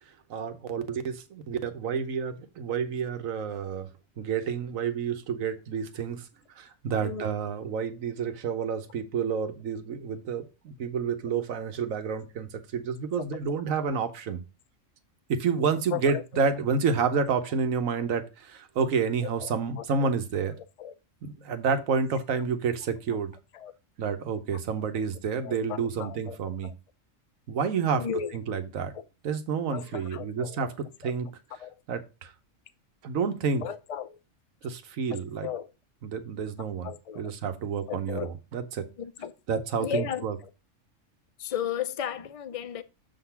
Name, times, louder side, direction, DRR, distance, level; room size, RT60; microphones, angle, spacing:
voice 1, 0.3-3.9 4.2-6.3 6.6-14.4 15.3-20.5 21.2-23.3 24.0-26.7 27.5-28.0 28.3-28.9 29.2-31.3 31.9-32.3 33.0-33.6 34.6-35.5 36.0-36.9 37.2-38.9 39.5-40.3, right 6 dB, 90° right, 1.3 m, -29 dB
voice 2, 7.0-7.3 13.3-13.4 15.9-16.2 19.2-20.1 20.8-20.9 23.5-23.7 25.4-26.4 26.6-26.7 27.9-28.4 28.9-29.0 29.7-30.6 31.0-31.1 31.6-31.7 33.6-34.2 35.1-35.7 36.8-37.3 37.9-38.3 39.0-39.3 39.8-40.5 41.4-42.8, left 8 dB, 55° left, 0.4 m, -35 dB
7.3 x 3.9 x 5.7 m
omnidirectional pair, 1.4 m